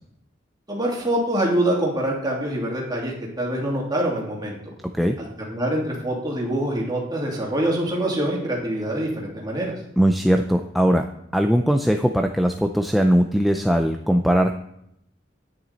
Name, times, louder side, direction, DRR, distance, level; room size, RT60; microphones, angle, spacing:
voice 1, 0.7-4.7 5.2-9.7, right 1 dB, 25° right, -2 dB, 2.6 m, -25 dB
voice 2, 10.0-11.0 11.3-14.5, equal, ahead, 4 dB, 0.4 m, -20 dB
10.0 x 9.3 x 4.0 m, 0.75 s
head